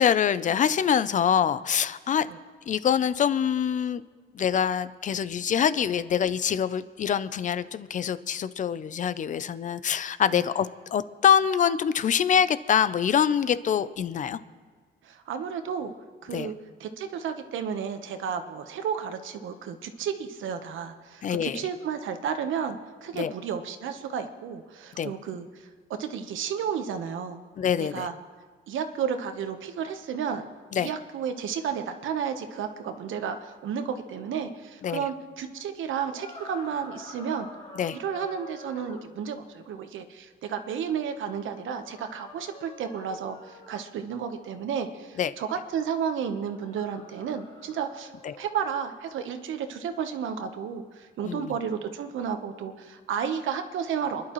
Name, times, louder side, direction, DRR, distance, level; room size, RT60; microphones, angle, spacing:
voice 1, 0.0-2.3 2.7-4.0 4.3-14.4 16.3-16.5 21.2-21.6 23.1-23.3 25.0-25.1 27.6-28.1 30.7-30.9 34.8-35.0 37.8-38.0 45.2-45.3 48.2-48.4 51.2-51.6, left 8 dB, 40° left, 15 dB, 0.5 m, -25 dB
voice 2, 15.0-15.9 16.2-16.5 16.8-25.7 26.0-27.4 27.8-28.1 28.7-30.5 30.8-37.5 38.0-48.1 48.4-54.3, right 7 dB, 75° right, 8 dB, 1.1 m, -32 dB
sound 1, 36.1-39.1 41.8-43.9 46.5-48.5, left 2 dB, 20° left, 1.6 m, -47 dB
28.5 x 11.5 x 3.1 m, 1.5 s
cardioid pair, 155°, 21 cm